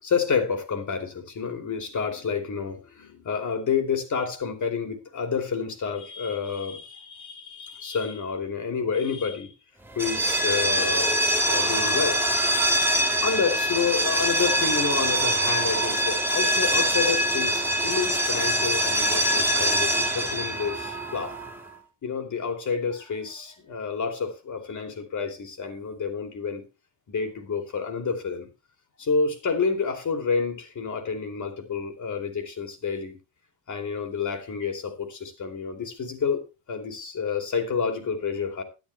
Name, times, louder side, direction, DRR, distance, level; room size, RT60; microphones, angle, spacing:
voice 1, 0.0-9.5 10.0-11.2 11.4-12.2 13.2-21.3 22.0-26.6 27.1-28.5 29.0-33.2 33.7-38.6, left 5 dB, 40° left, 4 dB, 2.9 m, -29 dB
sound 1, 9.9-21.6, right 1 dB, 5° right, 1.5 m, -24 dB
11.5 x 11.5 x 3.2 m, 0.29 s
cardioid pair, 145°, 45 cm